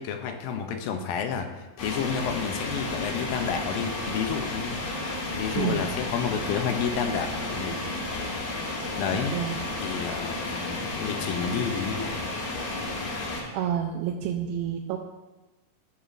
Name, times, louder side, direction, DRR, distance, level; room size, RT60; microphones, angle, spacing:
voice 1, 0.0-4.8 5.4-7.9 9.0-9.3 9.8-12.3, left 7 dB, 80° left, 6 dB, 2.3 m, -30 dB
sound 1, 1.8-13.4, left 2 dB, 60° left, 2.6 m, -32 dB
voice 2, 13.5-15.0, right 9 dB, 85° right, 0 dB, 2.4 m, -29 dB
16.0 x 6.8 x 2.6 m, 1.1 s
omnidirectional pair, 4.4 m